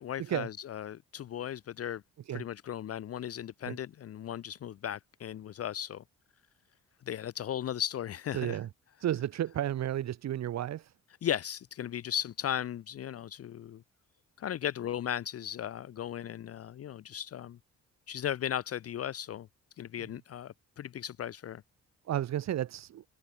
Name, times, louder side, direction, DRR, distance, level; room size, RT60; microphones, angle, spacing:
voice 1, 0.0-2.0 2.3-6.0 7.1-8.6 11.2-13.8 14.4-17.6 18.1-19.5 19.8-21.6, left 10 dB, 50° left, 0.8 m, -36 dB
voice 2, 8.3-8.7 9.0-10.9 20.0-20.1 22.1-23.0, right 11 dB, 60° right, 1.2 m, -32 dB
cardioid pair, 90°, 30 cm